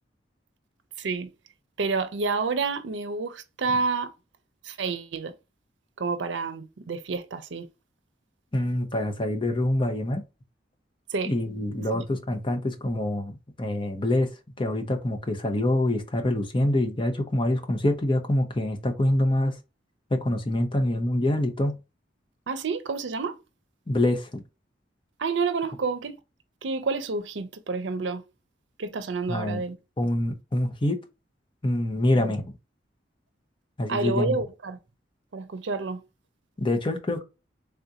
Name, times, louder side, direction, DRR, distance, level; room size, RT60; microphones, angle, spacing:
voice 1, 1.0-1.3 1.8-4.1 4.6-5.4 6.0-7.7 11.1-11.3 11.9-12.0 22.5-23.4 25.2-26.2 26.6-28.2 28.8-29.8 32.1-32.3 33.9-34.8 35.3-36.0, right 4 dB, 80° right, 0.5 m, -29 dB
voice 2, 8.5-10.2 11.3-13.3 13.6-14.3 14.6-19.5 20.1-21.8 23.9-24.4 29.3-29.6 30.0-31.0 31.6-32.5 33.8-34.4 36.6-37.2, left 1 dB, 30° left, 0.7 m, -25 dB
3.5 x 2.5 x 2.7 m
head